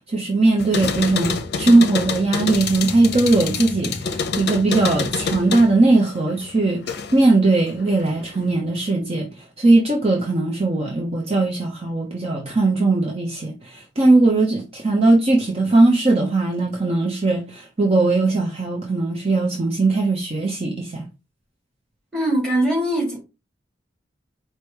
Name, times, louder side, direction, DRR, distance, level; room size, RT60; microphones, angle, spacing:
voice 1, 0.1-21.0, right 2 dB, 35° right, 0.9 m, -19 dB
sound 1, 0.6-7.3 7.7-8.5, left 5 dB, 60° left, 0.6 m, -27 dB
voice 2, 22.1-23.2, right 1 dB, 5° left, 2.6 m, -21 dB
4.9 x 2.2 x 4.7 m
head